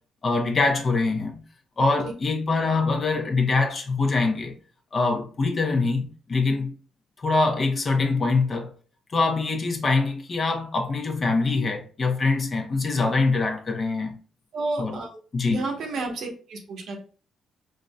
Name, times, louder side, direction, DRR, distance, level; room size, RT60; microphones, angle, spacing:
voice 1, 0.2-1.4 1.8-4.5 4.9-6.7 7.2-8.7 9.1-14.1 14.8-15.0 15.3-15.6, left 3 dB, 40° left, 0.8 m, -24 dB
voice 2, 14.5-15.2 15.5-17.0, right 3 dB, 70° right, 0.9 m, -31 dB
4.5 x 2.6 x 2.2 m
cardioid pair, 90°, 0 cm